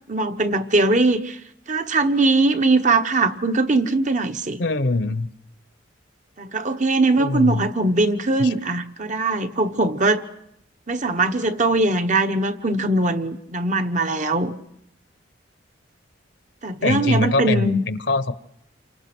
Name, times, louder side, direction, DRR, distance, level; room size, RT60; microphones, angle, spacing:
voice 1, 0.1-1.4 1.7-4.6 6.4-10.2 10.9-14.5 16.6-17.8, right 2 dB, 40° right, 8 dB, 1.2 m, -21 dB
voice 2, 4.6-5.3 7.2-7.7 8.4-8.5 16.8-18.3, left 3 dB, 65° left, 13 dB, 1.0 m, -22 dB
28.5 x 24.5 x 6.2 m, 0.80 s
head